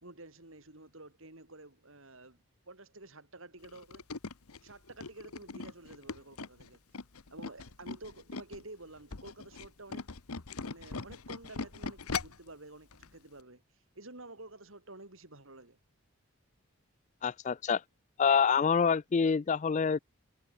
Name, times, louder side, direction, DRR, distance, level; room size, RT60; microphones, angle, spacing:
voice 1, 0.0-4.0 4.6-6.8 7.3-10.1 10.6-13.6 13.9-15.8, right 2 dB, 60° right, 3.4 m, -50 dB
Tools, 3.6-8.6 9.0-12.5 12.9-13.1 13.4-13.5, left 4 dB, 80° left, 1.2 m, -40 dB
voice 2, 17.2-17.8 18.2-20.0, left 6 dB, 30° left, 0.3 m, -26 dB
head